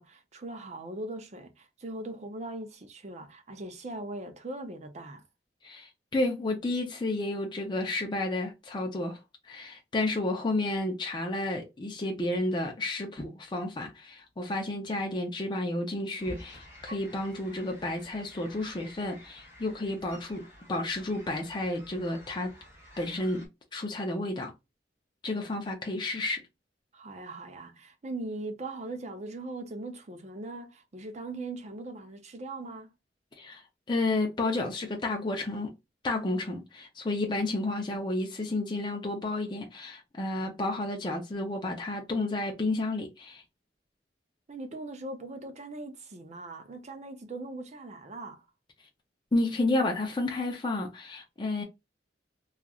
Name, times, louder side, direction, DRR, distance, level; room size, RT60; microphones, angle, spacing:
voice 1, 0.0-5.2 26.9-32.9 44.5-48.4, right 2 dB, 40° right, 0.6 m, -40 dB
voice 2, 5.6-9.2 9.5-22.5 23.0-24.5 25.2-26.4 33.4-33.6 33.9-35.7 36.0-43.4 49.3-51.6, left 2 dB, 25° left, 0.5 m, -31 dB
sound 1, 16.2-23.5, equal, 15° right, 1.2 m, -50 dB
3.0 x 2.4 x 2.3 m
head